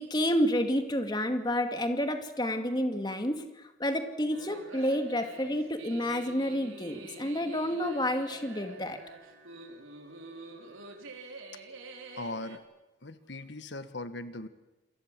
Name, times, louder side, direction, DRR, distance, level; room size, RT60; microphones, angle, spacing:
voice 1, 0.0-3.5 3.8-9.0, equal, 20° left, 6 dB, 2.3 m, -29 dB
sound 1, 4.3-12.6, right 2 dB, 85° right, 4.2 m, -47 dB
voice 2, 12.1-12.6 13.0-14.5, left 2 dB, 60° left, 11 dB, 1.6 m, -39 dB
28.0 x 22.5 x 7.7 m, 1.0 s
head